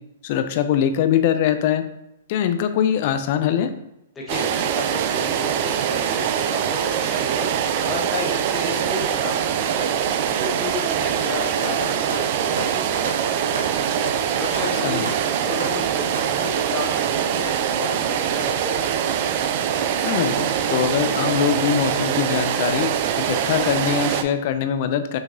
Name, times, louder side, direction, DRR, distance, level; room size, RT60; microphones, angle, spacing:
voice 1, 0.2-1.8 2.3-3.7 14.8-15.1 19.9-22.9 23.2-25.2, left 9 dB, 45° left, 10 dB, 0.4 m, -22 dB
voice 2, 4.1-9.9 10.3-13.9 14.3-15.1 15.4-19.0, left 3 dB, 15° left, -4 dB, 1.1 m, -33 dB
sound 1, 4.3-24.2, right 9 dB, 45° right, 0.3 m, -23 dB
sound 2, 11.6-16.7 17.4-17.6 18.3-18.4 18.6-18.8 19.8-20.0 20.4-20.5 21.1-21.2 21.6-21.8 22.2-22.4, right 2 dB, 90° right, 1.3 m, -34 dB
6.3 x 2.9 x 2.6 m, 0.86 s
hypercardioid pair, 140°, 0 cm